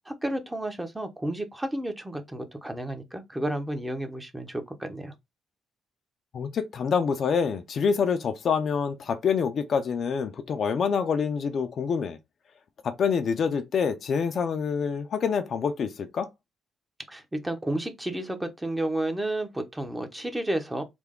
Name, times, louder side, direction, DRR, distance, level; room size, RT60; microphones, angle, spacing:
voice 1, 0.1-5.1 17.1-20.8, right 1 dB, 10° right, 0.8 m, -31 dB
voice 2, 6.3-12.2 12.8-16.3, left 6 dB, 55° left, 0.5 m, -26 dB
3.4 x 2.3 x 3.6 m
cardioid pair, 90°, 0 cm